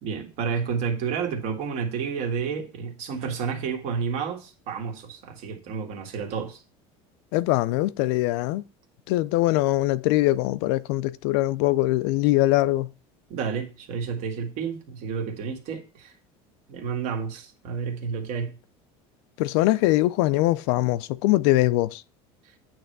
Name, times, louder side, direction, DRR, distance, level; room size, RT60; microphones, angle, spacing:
voice 1, 0.0-6.6 13.3-16.1 16.7-18.6, right 6 dB, 60° right, 1.8 m, -30 dB
voice 2, 7.3-8.6 9.1-12.9 19.4-22.0, left 17 dB, 75° left, 0.4 m, -22 dB
8.8 x 3.4 x 6.6 m
cardioid pair, 145°, 13 cm